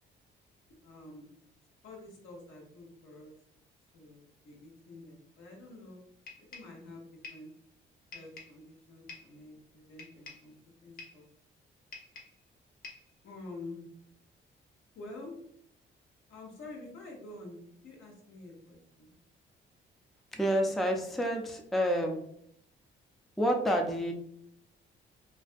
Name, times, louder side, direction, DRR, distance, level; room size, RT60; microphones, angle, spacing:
voice 1, 0.8-1.3 1.8-3.3 3.9-6.0 6.5-7.0 7.3-7.5 8.1-10.5 10.8-11.3 13.2-13.9 14.9-15.4 16.3-19.1, left 2 dB, 75° left, -1 dB, 0.9 m, -48 dB
sound 1, 6.3-6.8 7.2-7.5 8.1-8.6 9.1-9.4 10.0-10.5 11.0-11.3 11.9-12.4 12.8-13.1, left 4 dB, 45° left, 0.7 m, -48 dB
voice 2, 20.3-22.2 23.4-24.1, equal, ahead, 2 dB, 0.3 m, -29 dB
2.5 x 2.1 x 2.5 m, 0.68 s
cardioid pair, 90°, 20 cm